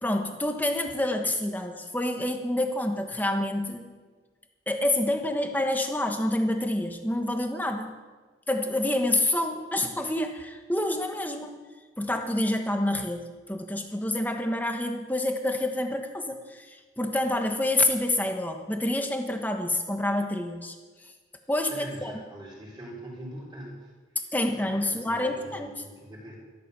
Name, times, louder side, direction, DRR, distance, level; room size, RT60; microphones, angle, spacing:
voice 1, 0.0-3.9 4.7-8.0 8.5-11.5 12.0-20.7 21.5-22.1 24.3-25.7, left 1 dB, 10° left, 5 dB, 1.2 m, -28 dB
voice 2, 21.7-23.9 24.2-26.4, right 1 dB, 25° right, -3 dB, 4.6 m, -43 dB
13.5 x 13.5 x 6.9 m, 1.3 s
head